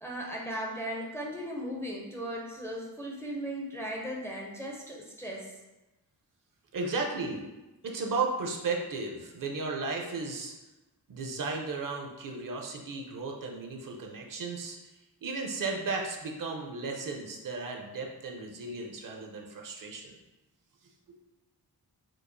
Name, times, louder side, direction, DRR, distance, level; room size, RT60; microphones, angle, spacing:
voice 1, 0.0-5.5, equal, 5° left, -2 dB, 0.4 m, -37 dB
voice 2, 6.7-7.5 7.8-10.5 11.1-14.8 15.2-20.2 21.1-21.2, right 3 dB, 60° right, 1 dB, 0.5 m, -34 dB
4.5 x 2.3 x 2.6 m, 1.0 s
wide cardioid pair, 150°, 38 cm